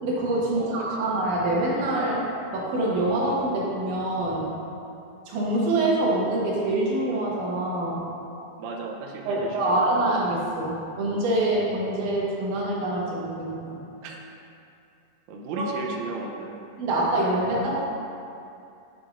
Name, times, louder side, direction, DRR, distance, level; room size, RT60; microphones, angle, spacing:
voice 1, 0.0-2.2 2.5-4.5 5.3-8.0 9.3-13.8 15.6-15.7 16.8-17.8, right 1 dB, 65° right, -5 dB, 2.5 m, -25 dB
voice 2, 0.5-1.1 8.6-10.0 14.0-14.2 15.3-16.7, right 3 dB, 90° right, 0 dB, 1.6 m, -35 dB
10.5 x 4.8 x 2.4 m, 2.6 s
omnidirectional pair, 4.0 m